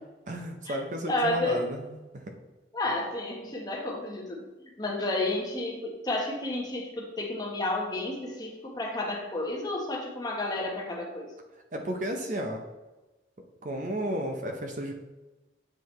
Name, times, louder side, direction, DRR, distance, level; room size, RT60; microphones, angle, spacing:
voice 1, 0.3-2.3 11.7-12.6 13.6-14.9, equal, 45° right, 4 dB, 0.7 m, -33 dB
voice 2, 1.1-1.6 2.7-4.4 4.8-11.3, left 2 dB, 20° left, 0 dB, 1.0 m, -31 dB
7.6 x 4.7 x 3.1 m, 1.1 s
head